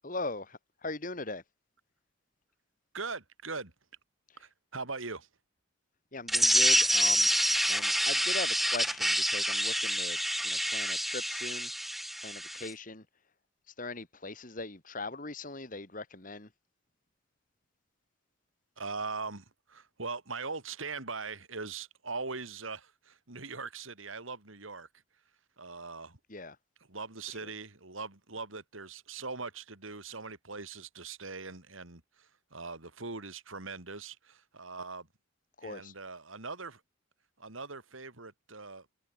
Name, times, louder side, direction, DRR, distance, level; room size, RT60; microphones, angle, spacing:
voice 1, 0.0-1.4 6.1-7.3 7.7-11.7 12.2-13.1 13.8-16.5 26.3-26.6 27.4-27.5 35.6-35.9, left 2 dB, 40° left, 2.4 m, -40 dB
voice 2, 2.9-3.7 4.4-5.3 18.8-24.9 25.6-26.2 26.9-35.1 35.6-36.8 37.4-39.0, right 4 dB, 90° right, 3.7 m, -41 dB
sound 1, 6.3-12.7, equal, ahead, 0.3 m, -27 dB
head